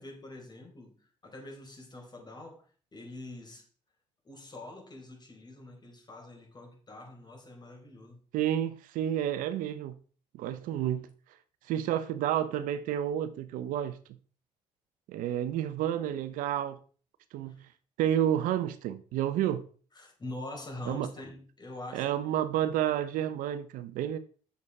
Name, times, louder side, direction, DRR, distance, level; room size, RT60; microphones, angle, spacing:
voice 1, 0.0-3.6 4.2-8.2 17.4-17.6 19.9-22.2, left 1 dB, 30° left, 4.3 m, -45 dB
voice 2, 8.3-10.0 10.3-11.1 11.7-14.0 15.1-16.8 17.3-17.7 18.0-19.7 20.9-21.1 21.9-24.2, right 11 dB, 80° right, 0.8 m, -30 dB
8.3 x 6.8 x 4.7 m
supercardioid pair, 75°, 14 cm